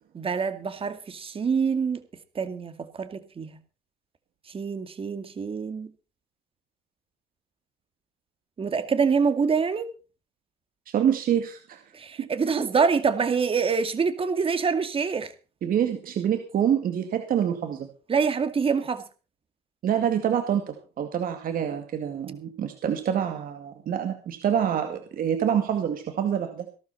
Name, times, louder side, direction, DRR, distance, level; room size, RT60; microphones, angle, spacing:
voice 1, 0.1-2.0 2.3-3.5 4.5-5.9 8.6-9.9 11.9-15.3 18.1-19.0, right 5 dB, 35° right, 10 dB, 2.3 m, -25 dB
voice 2, 10.9-11.8 12.2-12.5 15.6-17.9 19.8-26.7, right 9 dB, 55° right, 6 dB, 2.2 m, -26 dB
17.5 x 12.5 x 4.3 m, 0.35 s
cardioid pair, 110°, 17 cm